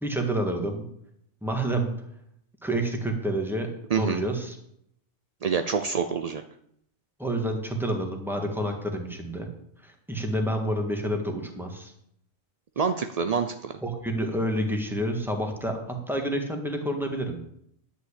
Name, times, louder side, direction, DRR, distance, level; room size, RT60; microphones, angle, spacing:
voice 1, 0.0-0.8 1.4-1.9 2.6-3.7 3.9-4.6 7.2-9.5 9.8-11.9 13.8-17.4, right 1 dB, ahead, 3 dB, 1.6 m, -28 dB
voice 2, 3.9-4.2 5.4-6.4 12.8-13.7, right 6 dB, 60° right, 8 dB, 0.4 m, -26 dB
10.5 x 5.6 x 8.3 m, 0.72 s
omnidirectional pair, 1.4 m